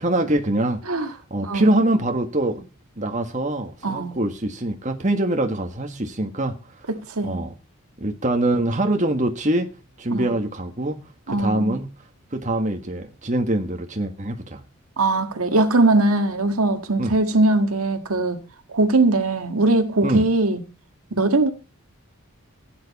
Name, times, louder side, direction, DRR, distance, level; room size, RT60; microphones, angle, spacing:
voice 1, 0.0-2.7 3.0-6.8 7.2-7.5 8.0-9.7 10.0-11.0 11.3-11.9 12.3-14.6 17.0-17.2 20.0-20.2, right 1 dB, 35° right, 1.6 m, -24 dB
voice 2, 3.8-4.2 6.9-7.4 10.1-10.3 11.3-11.8 15.0-18.4 18.7-20.6 21.1-21.5, right 2 dB, 90° right, 1.7 m, -20 dB
16.5 x 9.5 x 4.2 m
head